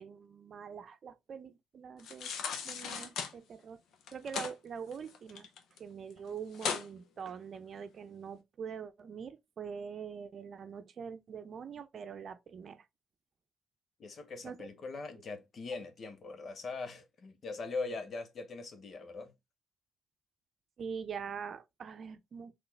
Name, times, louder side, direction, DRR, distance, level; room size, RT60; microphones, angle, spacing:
voice 1, 0.0-2.3 2.6-3.8 4.1-5.5 5.8-12.9 14.4-14.6 20.8-22.5, right 6 dB, 55° right, 0.6 m, -44 dB
sound 1, 2.0-3.3 4.0-4.5 4.9-5.8 6.1-6.2 6.5-6.9 7.4-7.5, left 6 dB, 75° left, 0.8 m, -37 dB
voice 2, 14.0-19.3, left 3 dB, 50° left, 1.0 m, -41 dB
4.0 x 3.2 x 3.3 m
cardioid pair, 90°, 0 cm